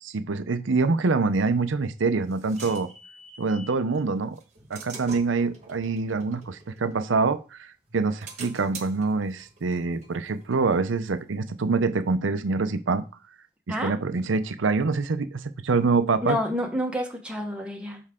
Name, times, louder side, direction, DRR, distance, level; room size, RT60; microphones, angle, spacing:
voice 1, 0.0-2.9 3.4-4.4 4.7-13.0 13.7-16.4, right 4 dB, 85° right, 11 dB, 0.6 m, -25 dB
sound 1, 1.6-3.8 4.4-7.5 7.9-11.3, right 4 dB, 35° right, 1.2 m, -45 dB
voice 2, 16.2-18.0, left 1 dB, 5° right, 1 dB, 1.1 m, -28 dB
6.6 x 4.6 x 3.7 m, 0.33 s
head